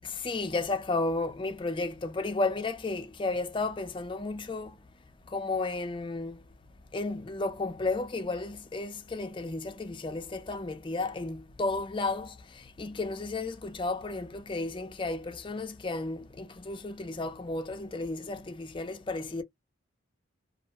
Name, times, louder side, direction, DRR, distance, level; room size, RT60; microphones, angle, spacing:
voice 1, 0.0-4.8 5.2-6.5 6.9-19.4, left 3 dB, 25° left, 0.4 m, -33 dB
2.4 x 2.2 x 2.9 m
head